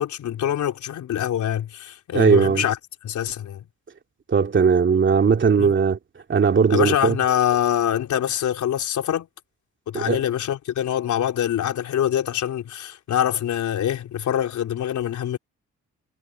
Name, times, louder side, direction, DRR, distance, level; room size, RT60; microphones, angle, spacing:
voice 1, 0.0-2.8 3.0-3.7 5.6-5.7 6.7-9.3 9.9-15.4, left 10 dB, 70° left, 4.4 m, -24 dB
voice 2, 2.1-2.6 4.3-6.0 6.3-7.1 9.9-10.2, right 6 dB, 40° right, 2.7 m, -18 dB
cardioid pair, 90°, 30 cm